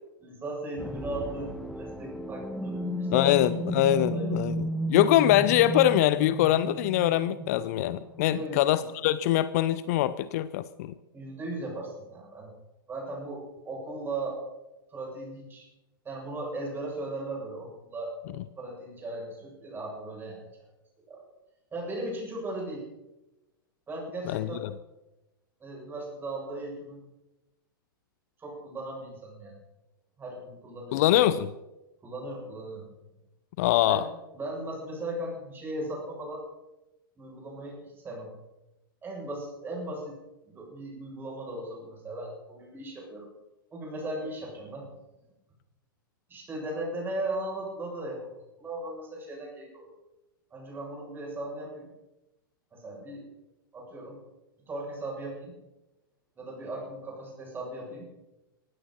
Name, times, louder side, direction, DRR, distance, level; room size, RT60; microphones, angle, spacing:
voice 1, 0.2-3.5 4.0-4.7 8.3-8.6 11.1-12.5 12.9-14.4 14.9-15.7 16.0-18.1 18.6-20.4 21.1-21.2 21.7-22.8 23.9-24.6 25.6-27.0 28.4-29.6 30.2-31.4 32.0-32.9 33.9-34.0 34.3-36.4 37.2-38.3 39.0-40.2 40.4-43.3 43.7-44.9 46.3-48.3 48.6-49.9 50.5-51.9 52.7-53.2 53.7-54.2 54.7-55.5 56.4-58.1, right 1 dB, 20° right, -2 dB, 7.8 m, -37 dB
sound 1, 0.8-8.5, equal, 5° left, 1.2 m, -33 dB
voice 2, 3.1-4.6 4.9-10.9 24.3-24.7 30.9-31.5 33.6-34.1, left 13 dB, 45° left, 16 dB, 0.6 m, -23 dB
19.0 x 16.0 x 4.4 m, 0.98 s
figure-of-eight pair, 100°, 12 cm